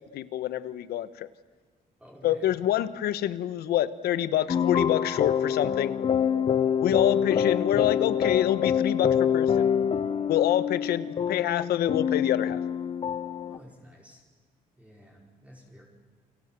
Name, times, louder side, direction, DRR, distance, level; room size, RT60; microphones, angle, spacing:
voice 1, 0.1-1.3 2.2-5.9 6.8-9.6 10.3-12.6, left 12 dB, 75° left, 13 dB, 1.2 m, -26 dB
voice 2, 2.0-2.5 13.5-14.2 14.8-15.8, equal, 10° right, -2 dB, 5.1 m, -51 dB
sound 1, 4.5-13.6, left 8 dB, 35° left, 0.8 m, -26 dB
29.0 x 25.5 x 7.7 m, 1.4 s
cardioid pair, 135°, 16 cm